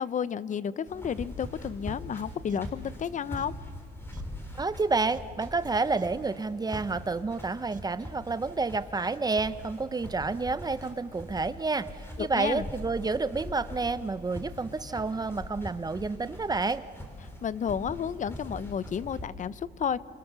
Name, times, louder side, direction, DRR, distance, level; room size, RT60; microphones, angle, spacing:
voice 1, 0.0-3.5 12.2-12.6 17.4-20.0, left 7 dB, 45° left, 16 dB, 0.7 m, -32 dB
sound 1, 0.9-19.3, left 1 dB, 15° left, 4.3 m, -42 dB
sound 2, 2.2-2.3 2.5-2.6 3.0-3.1 3.4-3.5 4.1-4.2 4.8-4.9 5.1-5.2 5.6-5.7 6.0-6.1 6.7-6.8 7.7-7.8, right 7 dB, 45° right, 1.5 m, -48 dB
voice 2, 4.6-16.8, right 3 dB, 20° right, 14 dB, 0.6 m, -29 dB
28.5 x 26.0 x 6.8 m, 2.3 s
cardioid pair, 115°, 18 cm